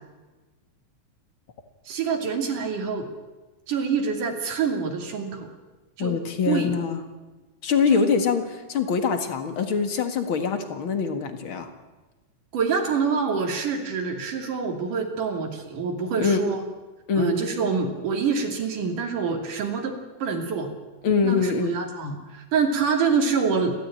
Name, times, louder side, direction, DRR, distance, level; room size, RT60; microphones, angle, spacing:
voice 1, 1.9-3.1 3.7-5.5 6.0-6.2 6.5-6.8 7.9-8.1 12.5-16.6 17.1-20.7 21.2-23.7, right 5 dB, 80° right, 3 dB, 4.3 m, -26 dB
voice 2, 6.0-7.0 7.6-11.7 16.2-16.4 17.1-17.4 21.0-21.8, left 5 dB, 45° left, 7 dB, 2.3 m, -24 dB
29.5 x 13.0 x 8.9 m, 1.2 s
omnidirectional pair, 3.6 m